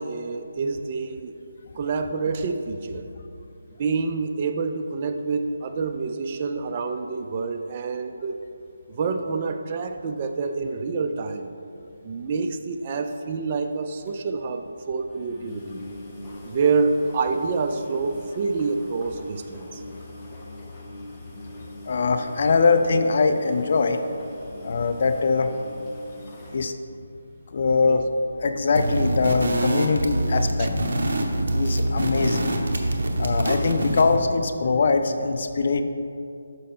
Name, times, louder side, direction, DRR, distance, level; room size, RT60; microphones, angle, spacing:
voice 1, 0.0-1.3 1.8-3.1 3.8-8.4 8.9-11.5 12.0-15.9 16.4-19.8 27.8-28.0 30.6-30.7, right 4 dB, 30° right, 6 dB, 0.3 m, -27 dB
sound 1, 13.3-13.5 13.7-13.8 14.1-14.2 14.5-14.6 15.1-26.7, left 1 dB, 15° left, 0.7 m, -42 dB
voice 2, 21.9-24.0 24.6-25.5 26.5-26.7 27.5-28.1 28.4-30.7 31.5-32.5 33.2-35.8, left 4 dB, 45° left, 7 dB, 0.4 m, -22 dB
sound 2, 28.7-34.2, right 1 dB, 55° right, 0.8 m, -25 dB
6.4 x 5.2 x 4.2 m, 2.5 s
hypercardioid pair, 165°, 0 cm